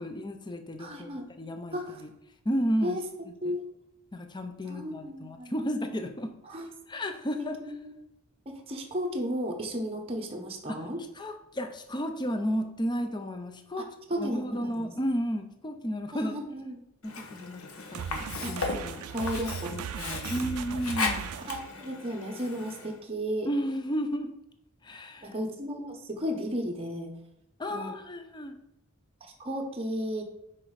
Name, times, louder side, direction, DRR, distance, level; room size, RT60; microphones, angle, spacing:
voice 1, 0.0-2.1 2.4-3.0 4.1-6.3 6.9-7.6 10.7-10.9 11.2-13.9 14.2-16.3 17.0-17.6 17.9-19.0 19.7-21.3 23.5-24.3 24.8-25.3 27.6-28.6, equal, 20° left, 7 dB, 0.6 m, -33 dB
voice 2, 0.8-1.3 1.7-2.0 2.8-3.0 3.4-3.7 4.7-5.8 6.5-6.7 7.6-7.9 8.5-11.0 14.1-14.9 16.1-16.8 18.4-18.6 19.1-19.7 20.0-20.4 21.5-23.5 25.2-27.1 27.7-27.9 29.2-30.2, equal, 25° right, 2 dB, 0.8 m, -34 dB
Sink (filling or washing), 17.0-23.0, left 4 dB, 75° left, 1.0 m, -36 dB
sound 1, 17.9-21.7, right 8 dB, 85° right, 0.3 m, -38 dB
6.0 x 4.4 x 4.8 m, 0.85 s
head